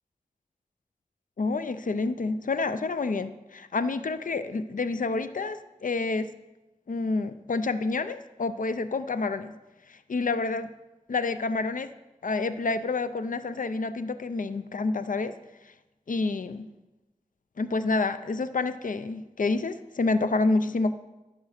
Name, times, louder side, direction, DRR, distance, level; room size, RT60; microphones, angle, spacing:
voice 1, 1.4-6.3 6.9-9.5 9.9-10.7 11.1-11.9 12.2-15.3 16.1-16.7 17.6-20.9, left 3 dB, 70° left, 12 dB, 0.4 m, -28 dB
11.0 x 5.1 x 6.4 m, 1.0 s
wide cardioid pair, 55°, 14 cm